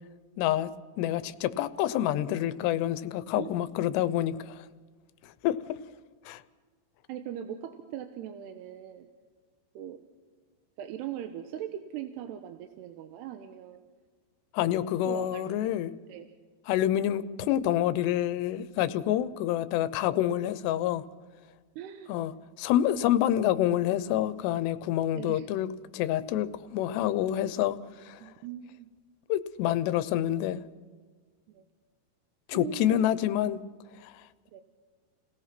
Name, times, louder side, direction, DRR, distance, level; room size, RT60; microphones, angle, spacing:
voice 1, 0.4-0.7 1.0-4.6 5.4-5.6 6.3-6.4 14.5-15.9 16.7-21.0 22.1-22.3 22.6-25.7 25.9-27.8 28.1-28.2 29.3-30.6 32.5-33.6 34.0-34.1, left 12 dB, 85° left, 2.9 m, -27 dB
voice 2, 7.1-9.1 9.7-10.0 10.8-13.8 15.1-15.7 16.1-16.3 20.4-20.5 21.8-22.1 25.1-25.5 28.2-28.9 31.5-31.6 32.5-33.0 34.5-34.6, right 10 dB, 80° right, 3.0 m, -40 dB
29.5 x 17.5 x 6.0 m
omnidirectional pair, 4.8 m